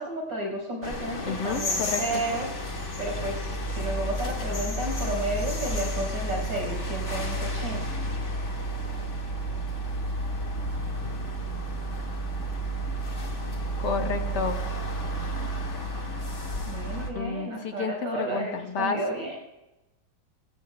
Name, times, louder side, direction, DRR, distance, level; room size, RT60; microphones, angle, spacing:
voice 1, 0.0-2.5 3.0-7.9 16.7-19.4, right 2 dB, 60° right, 0 dB, 6.1 m, -32 dB
sound 1, 0.8-17.1, equal, 35° left, 2.1 m, -31 dB
voice 2, 1.2-2.2 13.8-14.6 17.1-19.0, left 5 dB, 60° left, 4 dB, 2.0 m, -30 dB
27.0 x 15.0 x 2.3 m, 0.99 s
omnidirectional pair, 2.2 m